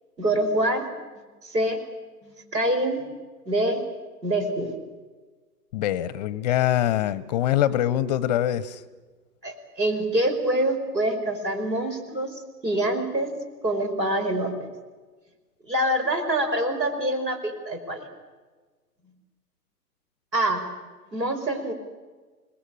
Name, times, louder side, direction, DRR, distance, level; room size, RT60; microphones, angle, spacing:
voice 1, 0.2-0.9 1.4-1.8 2.2-3.0 3.5-3.8 4.2-4.7 9.4-13.3 13.6-14.5 15.6-18.1 20.3-20.6 21.1-21.7, right 1 dB, 85° right, 5 dB, 5.7 m, -25 dB
voice 2, 5.7-8.8, left 12 dB, 25° left, 20 dB, 0.7 m, -24 dB
27.5 x 20.0 x 8.7 m, 1.3 s
figure-of-eight pair, 120°, 49 cm